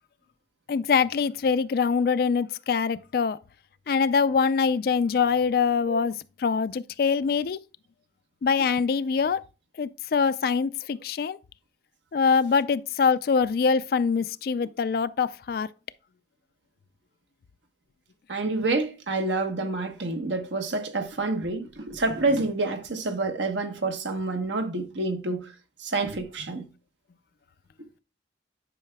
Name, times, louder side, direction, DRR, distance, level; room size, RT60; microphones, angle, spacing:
voice 1, 0.7-3.4 3.9-6.1 6.4-7.6 8.4-9.4 9.8-11.4 12.1-15.7, left 5 dB, 55° left, 0.3 m, -24 dB
voice 2, 18.3-25.5 25.8-26.7, right 3 dB, 85° right, 1.1 m, -28 dB
10.5 x 5.6 x 2.2 m
head